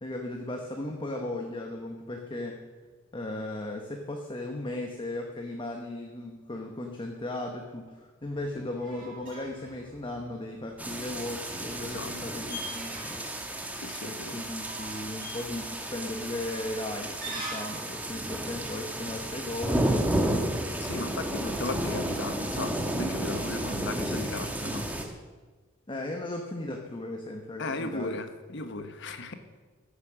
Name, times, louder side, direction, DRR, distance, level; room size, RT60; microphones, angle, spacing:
voice 1, 0.0-2.7 3.1-13.2 14.0-20.0 20.9-21.7 25.9-28.1, left 1 dB, 25° left, 2 dB, 1.1 m, -36 dB
sound 1, 8.2-17.9, right 2 dB, 45° right, 4.9 m, -45 dB
sound 2, 10.8-25.1, right 1 dB, 10° right, 1.4 m, -32 dB
voice 2, 11.8-12.2 13.8-14.4 20.8-24.9 27.6-29.3, left 2 dB, 60° left, 9 dB, 1.1 m, -36 dB
14.5 x 8.4 x 6.3 m, 1.3 s
head